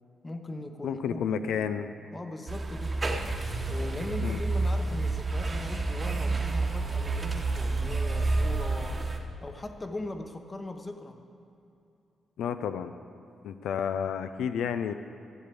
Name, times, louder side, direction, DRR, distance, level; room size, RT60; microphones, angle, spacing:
voice 1, 0.2-1.7 2.1-3.0 3.7-9.1 9.4-11.2, left 2 dB, 20° left, 7 dB, 0.9 m, -39 dB
voice 2, 0.8-1.9 4.2-4.4 12.4-12.9 13.4-14.9, left 7 dB, 90° left, 10 dB, 0.5 m, -31 dB
sound 1, 2.5-9.2, right 3 dB, 25° right, 1.1 m, -29 dB
13.5 x 7.1 x 8.3 m, 2.7 s
cardioid pair, 115°, 0 cm